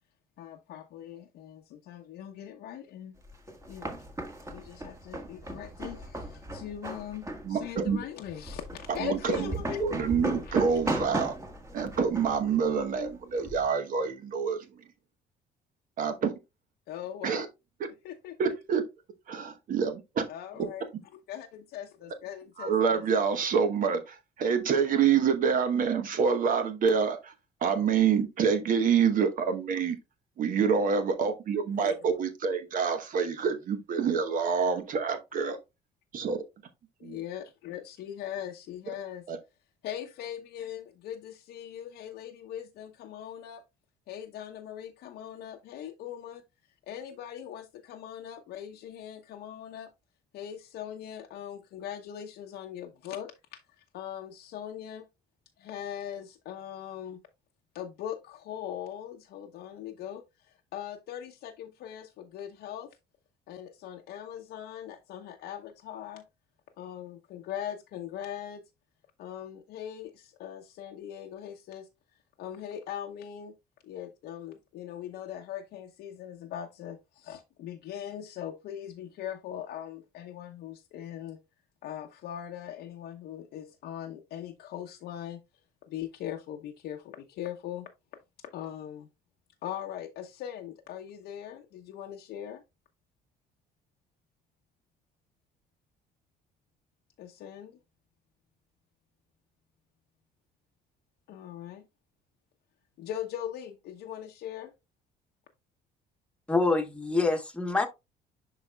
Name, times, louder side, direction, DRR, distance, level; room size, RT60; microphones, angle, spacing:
voice 1, 0.4-3.1 3.7-4.0 4.4-10.0 10.4-10.8 16.9-17.4 18.0-18.5 20.3-20.9 21.3-23.0 31.8-32.1 37.0-39.2 39.8-43.6 44.1-46.4 46.9-49.9 50.3-53.6 53.9-55.1 55.6-57.2 57.7-63.0 63.5-66.2 66.8-68.6 69.2-71.9 72.4-73.5 73.8-81.4 81.8-85.4 85.9-87.9 88.4-89.1 89.6-92.6 97.2-97.8 101.3-101.8 103.0-104.7, left 10 dB, 75° left, 0.8 m, -40 dB
sound 1, 3.2-13.7, right 1 dB, 15° right, 1.5 m, -37 dB
voice 2, 7.4-8.0 8.9-9.5 9.8-11.3 11.7-14.6 16.0-16.3 17.2-17.5 18.4-18.8 19.3-20.2 20.6-20.7 22.6-27.3 27.6-30.0 30.4-35.6 36.1-36.4 37.0-37.2 39.3-39.4, right 6 dB, 55° right, 1.0 m, -27 dB
voice 3, 106.5-107.9, left 3 dB, 5° left, 1.2 m, -26 dB
10.5 x 4.1 x 2.2 m
cardioid pair, 110°, 17 cm